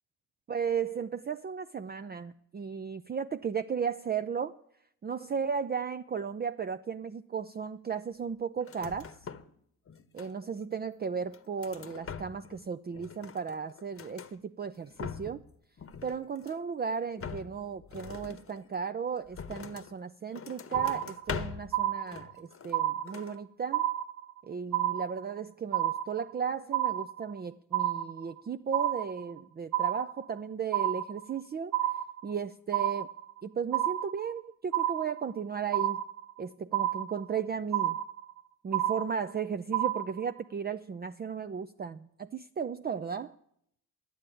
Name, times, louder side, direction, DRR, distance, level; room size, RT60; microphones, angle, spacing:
voice 1, 0.5-4.6 5.0-9.1 10.1-15.4 16.0-23.9 24.4-31.7 32.2-33.1 33.4-36.0 36.4-38.0 38.6-43.3, right 6 dB, 25° right, 10 dB, 0.5 m, -35 dB
sound 1, 8.6-9.6 9.9-10.6 11.1-12.6 12.9-14.3 14.8-15.5 15.8-16.7 17.2-19.9 20.3-21.7 22.1-22.8 23.1-23.4, left 6 dB, 35° left, 1.0 m, -43 dB
sound 2, 20.7-21.4 21.7-22.4 22.7-23.4 23.7-24.4 24.7-25.4 25.7-26.4 26.7-27.4 27.7-28.4 28.7-29.4 29.7-30.4 30.7-31.4 31.7-32.4 32.7-33.4 33.7-34.4 34.7-35.4 35.7-36.4 36.7-37.4 37.7-38.4 38.7-39.4 39.7-40.4, right 13 dB, 55° right, 0.8 m, -30 dB
10.5 x 8.6 x 9.0 m, 0.73 s
supercardioid pair, 60°, 38 cm